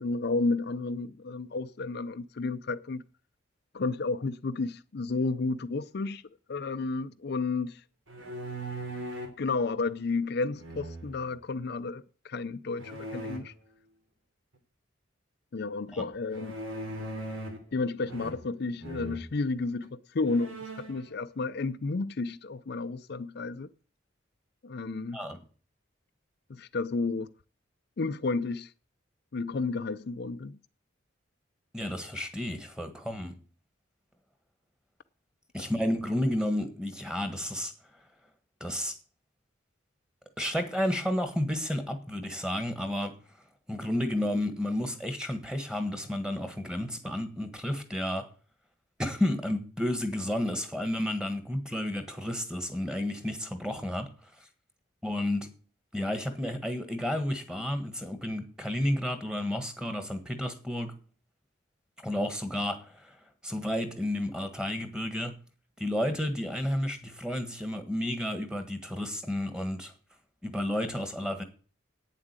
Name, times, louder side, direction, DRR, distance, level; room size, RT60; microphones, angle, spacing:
voice 1, 0.0-3.0 3.7-6.2 6.5-7.8 9.4-13.5 15.5-16.6 17.7-23.7 24.6-25.2 26.5-27.3 28.0-28.7 29.3-30.6, left 3 dB, 55° left, 0.5 m, -32 dB
sound 1, 8.1-9.4 10.6-11.3 12.8-13.4 16.3-17.7 18.1-18.6 18.8-19.2 19.8-19.9 20.3-21.0, right 1 dB, 85° right, 3.0 m, -39 dB
voice 2, 31.7-33.4 35.5-37.7 38.6-38.9 40.4-43.1 43.7-48.3 49.0-54.1 55.0-55.5 55.9-60.9 62.0-63.2 63.4-65.3 65.8-69.9 70.4-71.4, left 1 dB, 5° right, 1.5 m, -31 dB
9.1 x 7.4 x 8.9 m
head